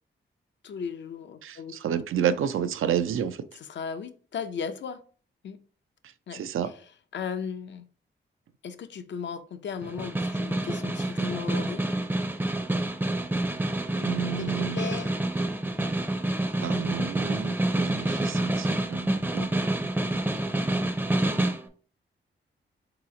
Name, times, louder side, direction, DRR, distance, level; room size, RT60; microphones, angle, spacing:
voice 1, 0.6-1.8 3.7-5.0 5.4-5.6 6.3-6.4 7.1-7.8 8.6-11.8 14.4-15.1, left 6 dB, 60° left, 0.5 m, -36 dB
voice 2, 1.4-3.4 6.3-6.7 13.9-14.8 16.6-19.7, right 9 dB, 85° right, 0.4 m, -30 dB
Snare drum, 9.8-21.7, right 1 dB, 10° right, 0.5 m, -28 dB
4.1 x 2.9 x 3.7 m
cardioid pair, 95°, 21 cm